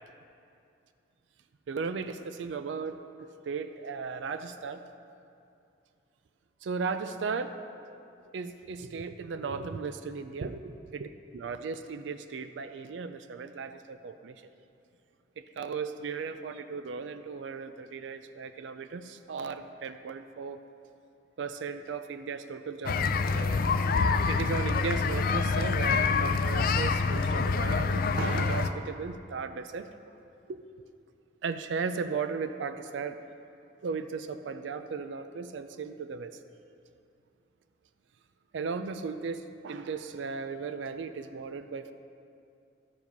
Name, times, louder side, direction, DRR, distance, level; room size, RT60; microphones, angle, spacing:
voice 1, 1.7-3.0 3.4-4.8 6.6-7.6 8.3-11.1 11.3-14.4 15.4-20.6 21.4-23.6 24.3-29.9 30.5-30.6 31.4-33.2 33.8-36.4 38.5-41.9, right 5 dB, 80° right, 10 dB, 0.4 m, -36 dB
sound 1, 22.8-28.7, left 4 dB, 55° left, 0.4 m, -26 dB
12.0 x 5.0 x 5.3 m, 2.6 s
head